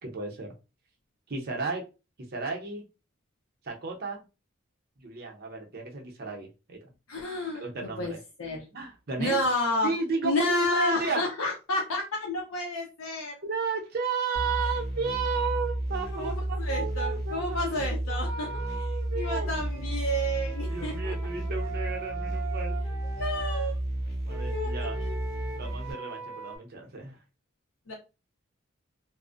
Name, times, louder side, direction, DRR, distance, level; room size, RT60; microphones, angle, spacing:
voice 1, 0.0-0.5 1.3-1.8 2.3-2.9 3.6-4.2 5.0-6.9 7.5-8.2 8.7-9.4 9.8-11.2 13.4-19.5 20.7-22.8 24.2-25.0 25.5-27.2, right 4 dB, 50° right, 1 dB, 0.6 m, -33 dB
voice 2, 7.1-8.1 8.4-8.7 9.2-9.9 10.2-13.3 16.1-16.3 16.6-18.5 19.2-21.1 23.2-23.8 24.5-25.1 27.9-28.0, left 1 dB, 85° left, 0 dB, 0.6 m, -30 dB
sound 1, 14.3-25.9, right 1 dB, 45° left, 1.1 m, -32 dB
Wind instrument woodwind instrument, 19.3-23.7 24.3-26.6, right 4 dB, 10° right, 0.8 m, -41 dB
2.5 x 2.0 x 2.4 m, 0.29 s
head